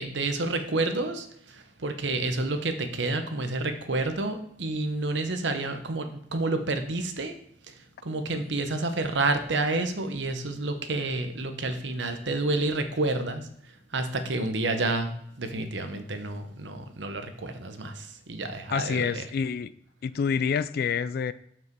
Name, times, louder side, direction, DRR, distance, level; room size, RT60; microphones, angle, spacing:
voice 1, 0.0-7.4 8.0-13.5 13.9-19.2, right 2 dB, 80° right, 7 dB, 0.9 m, -29 dB
voice 2, 18.7-19.7 20.0-21.3, left 6 dB, 55° left, 16 dB, 0.3 m, -27 dB
7.3 x 5.7 x 4.6 m, 0.73 s
head